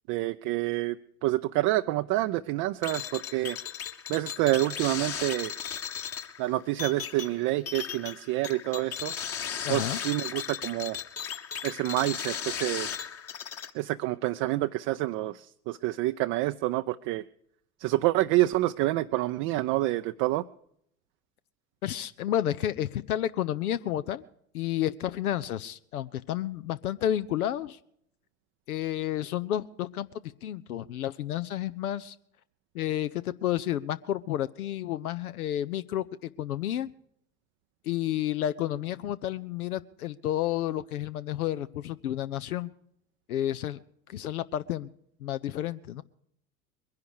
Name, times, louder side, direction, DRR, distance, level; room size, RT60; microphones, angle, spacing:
voice 1, 0.1-1.0 1.2-3.6 4.1-5.5 6.4-9.1 9.7-11.0 11.6-12.9 13.7-17.2 17.8-20.4, right 17 dB, 40° right, 8 dB, 0.5 m, -28 dB
sound 1, 2.8-13.7, left 8 dB, 30° left, 1.3 m, -36 dB
voice 2, 9.6-10.0 21.8-24.3 24.5-27.8 28.7-30.1 30.4-32.2 32.7-36.9 37.8-42.7 43.3-43.8 44.1-44.9 45.2-46.0, left 12 dB, 75° left, 14 dB, 0.7 m, -31 dB
22.0 x 10.5 x 4.8 m, 0.69 s
figure-of-eight pair, 75°, 45 cm